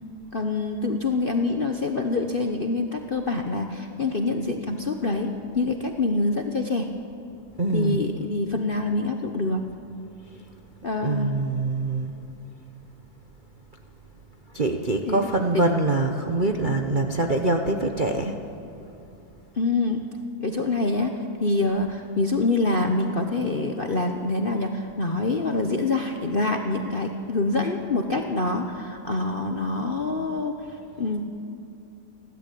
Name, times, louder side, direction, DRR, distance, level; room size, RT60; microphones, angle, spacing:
voice 1, 0.3-6.9 7.7-9.6 10.8-11.3 15.1-15.3 15.5-15.6 19.6-20.0 20.4-21.1 21.4-30.6 31.0-31.2, left 3 dB, 40° left, 4 dB, 0.9 m, -25 dB
voice 2, 7.6-8.0 11.0-12.1 14.5-18.4, right 2 dB, 35° right, 3 dB, 0.8 m, -24 dB
28.5 x 12.5 x 8.5 m, 2.8 s
omnidirectional pair, 2.1 m